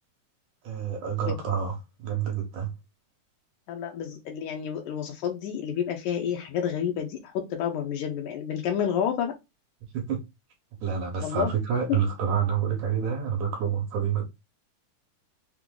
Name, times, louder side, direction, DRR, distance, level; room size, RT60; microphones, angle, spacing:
voice 1, 0.6-1.7 2.0-2.7 9.9-10.2 10.8-14.2, right 7 dB, 70° right, 2.2 m, -28 dB
voice 2, 3.7-9.3 11.2-11.5 11.9-12.0, left 8 dB, 75° left, 2.1 m, -29 dB
5.9 x 2.0 x 3.7 m
omnidirectional pair, 3.9 m